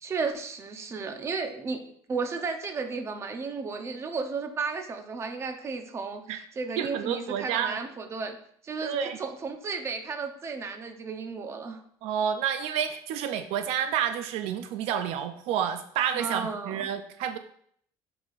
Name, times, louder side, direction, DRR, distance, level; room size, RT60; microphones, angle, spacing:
voice 1, 0.0-1.8 2.1-8.4 8.6-11.8 16.1-16.9, right 4 dB, 25° right, 6 dB, 0.7 m, -34 dB
voice 2, 6.8-7.8 8.8-9.2 12.0-17.4, right 9 dB, 75° right, 9 dB, 0.5 m, -29 dB
10.5 x 4.9 x 2.5 m, 0.65 s
cardioid pair, 155°, 11 cm